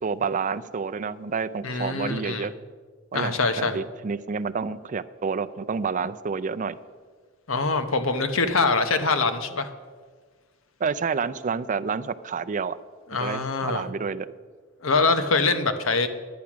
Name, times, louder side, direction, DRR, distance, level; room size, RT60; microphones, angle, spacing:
voice 1, 0.0-2.5 3.1-6.8 10.8-12.8 13.2-14.3, right 5 dB, 40° right, 12 dB, 0.4 m, -29 dB
voice 2, 1.6-2.5 3.1-3.8 7.5-9.7 13.1-13.9 14.8-16.1, left 3 dB, 90° left, 9 dB, 1.0 m, -24 dB
10.5 x 10.0 x 6.0 m, 1.5 s
head